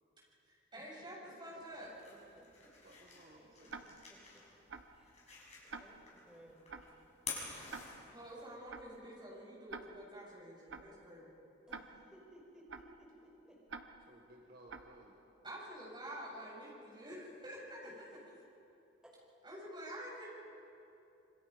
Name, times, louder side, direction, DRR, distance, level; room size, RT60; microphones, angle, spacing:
voice 1, 0.4-1.9 8.1-11.2 15.4-18.1 19.4-20.3, equal, 25° right, -4 dB, 7.4 m, -48 dB
voice 2, 1.4-1.7 2.8-4.0 14.0-15.2 15.5-15.7, right 1 dB, 50° right, -1 dB, 1.8 m, -60 dB
sound 1, 1.6-8.5, left 4 dB, 35° left, 6.6 m, -50 dB
Tick-tock, 3.7-3.8 4.7-4.8 5.7-5.8 6.7-6.8 7.7-7.8 8.7-8.8 9.7-9.8 10.7-10.8 11.7-11.8 12.7-12.8 13.7-13.8 14.7-14.8, right 4 dB, 70° right, 1.2 m, -45 dB
voice 3, 5.6-6.8 11.7-13.6 17.8-17.9 19.0-19.2, equal, 5° right, -4 dB, 5.4 m, -59 dB
27.0 x 25.0 x 5.3 m, 2.8 s
head